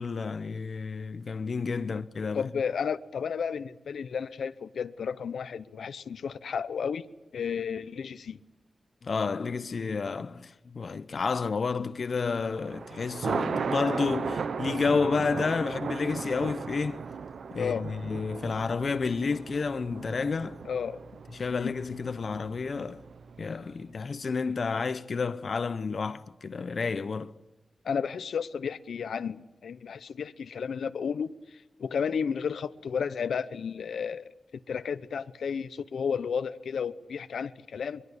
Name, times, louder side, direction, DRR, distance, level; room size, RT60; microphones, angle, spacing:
voice 1, 0.0-2.4 9.0-17.0 17.5-20.6 21.3-23.0 23.4-27.3, left 4 dB, 50° left, 0.8 m, -30 dB
voice 2, 2.3-7.1 7.3-8.4 17.5-17.9 20.6-21.0 21.5-21.7 27.8-31.3 31.8-34.3 34.7-38.0, left 6 dB, 85° left, 0.8 m, -32 dB
Thunder, 12.4-23.7, right 5 dB, 75° right, 0.9 m, -36 dB
22.5 x 22.5 x 8.2 m
wide cardioid pair, 110°, 0 cm